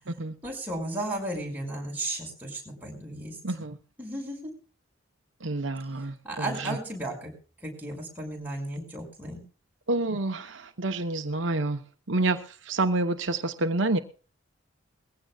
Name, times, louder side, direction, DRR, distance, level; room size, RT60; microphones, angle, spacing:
voice 1, 0.4-3.4 4.0-4.4 6.2-7.3 7.6-9.4, right 1 dB, 10° right, -1 dB, 5.8 m, -34 dB
voice 2, 3.4-3.8 5.4-6.8 9.9-11.8 12.1-14.0, right 2 dB, 65° right, 6 dB, 1.0 m, -28 dB
21.0 x 16.0 x 2.4 m, 0.39 s
head